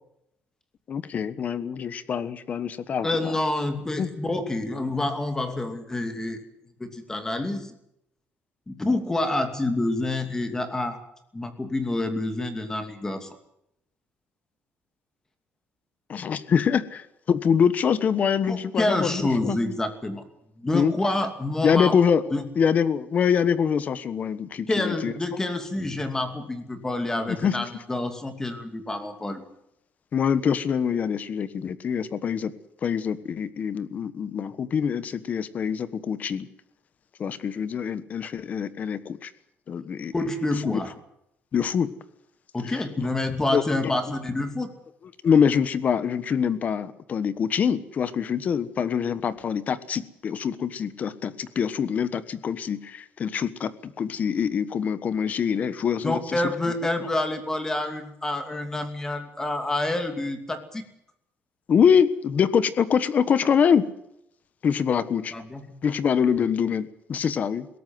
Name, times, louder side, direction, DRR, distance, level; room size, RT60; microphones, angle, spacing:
voice 1, 0.9-3.3 4.0-4.1 16.1-19.6 20.7-20.9 21.6-22.2 22.6-25.1 27.3-27.6 30.1-32.5 32.8-36.5 37.2-39.3 39.7-40.1 40.6-40.8 41.5-41.9 42.7-43.1 43.5-43.6 45.2-56.4 61.7-63.9 64.6-65.3 65.8-67.7, left 7 dB, 40° left, 15 dB, 1.3 m, -24 dB
voice 2, 3.0-6.4 6.8-7.7 8.7-11.0 11.3-13.3 18.5-20.2 20.6-21.9 22.3-22.4 24.7-29.4 40.1-40.9 42.5-44.7 56.0-60.8 65.3-65.7, left 2 dB, 15° left, 7 dB, 2.6 m, -28 dB
21.5 x 17.5 x 7.7 m, 0.79 s
cardioid pair, 155°, 4 cm